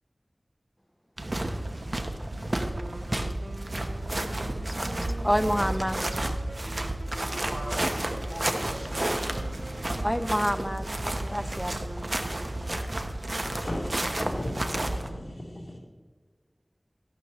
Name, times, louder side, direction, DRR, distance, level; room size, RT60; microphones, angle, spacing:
sound 1, 1.2-15.1, right 1 dB, 55° right, 1.0 m, -31 dB
sound 2, 2.7-13.1, right 2 dB, 75° right, 0.7 m, -44 dB
voice 1, 4.8-6.0 10.0-10.8 11.3-12.2, equal, ahead, 12 dB, 0.6 m, -28 dB
voice 2, 6.9-10.1, equal, 30° right, 1 dB, 2.2 m, -43 dB
voice 3, 13.6-15.8, left 1 dB, 50° left, -4 dB, 3.9 m, -36 dB
13.5 x 12.0 x 3.1 m, 1.5 s
wide cardioid pair, 50°, 0 cm